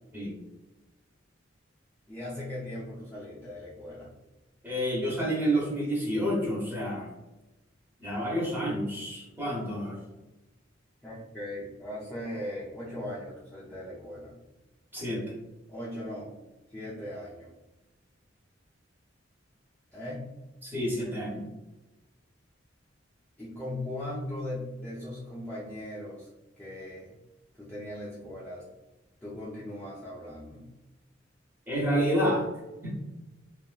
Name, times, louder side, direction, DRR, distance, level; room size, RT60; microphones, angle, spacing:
voice 1, 2.1-4.1 11.0-14.3 15.7-16.3 16.7-17.5 19.9-20.3 23.4-26.3 26.6-27.2 27.6-28.6 29.2-30.7, left 1 dB, 10° left, -9 dB, 0.5 m, -39 dB
voice 2, 4.6-7.1 8.0-10.0 14.9-15.3 20.6-21.4 31.7-32.5 32.8-32.9, equal, 10° right, -4 dB, 0.8 m, -29 dB
2.9 x 2.4 x 2.2 m, 1.0 s
head